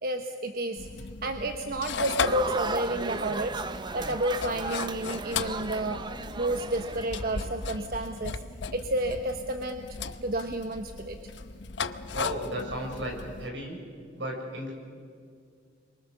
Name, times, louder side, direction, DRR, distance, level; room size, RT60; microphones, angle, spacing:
voice 1, 0.0-8.4 8.7-9.9 10.2-11.3, right 1 dB, 55° right, 6 dB, 1.0 m, -31 dB
sound 1, 0.8-13.5, left 5 dB, 85° left, 0.9 m, -37 dB
sound 2, 2.3-7.8, right 3 dB, 25° right, 0.6 m, -36 dB
voice 2, 12.1-13.8 14.2-14.7, equal, 85° right, 1 dB, 6.1 m, -34 dB
29.5 x 23.5 x 6.8 m, 2.2 s
head